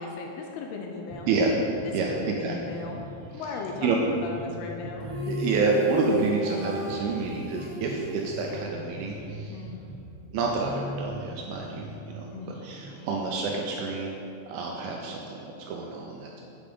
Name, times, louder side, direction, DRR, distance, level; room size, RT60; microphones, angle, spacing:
voice 1, 0.0-1.3 1.8-3.0 3.3-5.1 9.5-9.8 12.3-12.5, left 4 dB, 80° left, 1 dB, 2.4 m, -37 dB
sound 1, 1.1-14.0, right 1 dB, 40° right, 2.0 m, -41 dB
voice 2, 1.9-2.6 3.8-4.0 5.3-9.6 10.3-14.1 14.5-16.4, right 4 dB, 90° right, 0 dB, 2.2 m, -28 dB
sound 2, 5.0-9.3, equal, 75° right, 1.2 m, -35 dB
8.6 x 5.1 x 5.3 m, 2.8 s
omnidirectional pair, 5.0 m